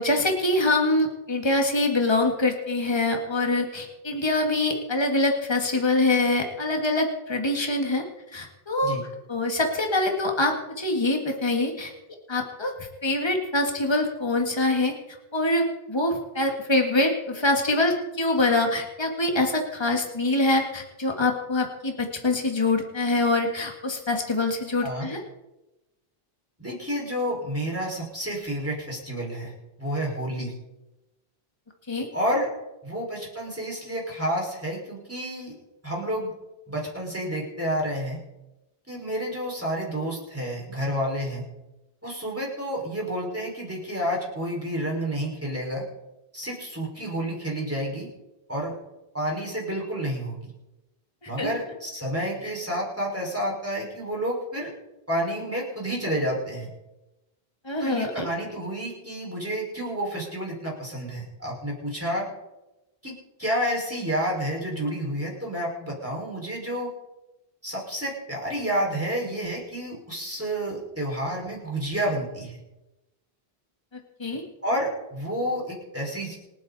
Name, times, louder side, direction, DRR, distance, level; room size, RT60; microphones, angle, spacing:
voice 1, 0.0-8.0 8.3-9.0 9.3-11.9 12.3-12.7 13.0-14.9 15.3-25.2 31.9-32.1 51.2-51.5 52.4-52.5 57.7-58.3 74.2-74.4, left 2 dB, 25° left, 2 dB, 2.0 m, -24 dB
voice 2, 26.6-29.5 29.8-30.5 32.1-32.5 32.8-35.5 35.8-36.3 36.7-38.2 38.9-41.4 42.0-45.8 46.3-48.1 48.5-48.7 49.1-50.5 51.3-54.7 55.1-56.7 57.8-62.3 63.0-63.1 63.4-66.9 67.6-72.6 74.6-76.4, equal, 15° right, -3 dB, 5.3 m, -30 dB
27.0 x 9.3 x 4.2 m, 0.99 s
omnidirectional pair, 1.0 m